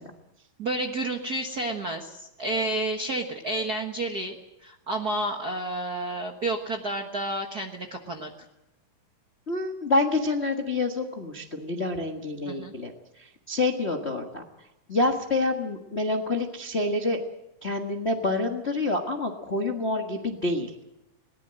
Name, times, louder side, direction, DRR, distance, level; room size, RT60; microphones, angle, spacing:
voice 1, 0.6-8.3 12.4-12.7, right 2 dB, 70° right, 3 dB, 0.9 m, -30 dB
voice 2, 9.5-12.9 13.2-14.4 14.9-17.2 17.6-20.7, left 2 dB, 70° left, 2 dB, 0.6 m, -27 dB
21.5 x 18.5 x 7.7 m, 0.89 s
omnidirectional pair, 4.1 m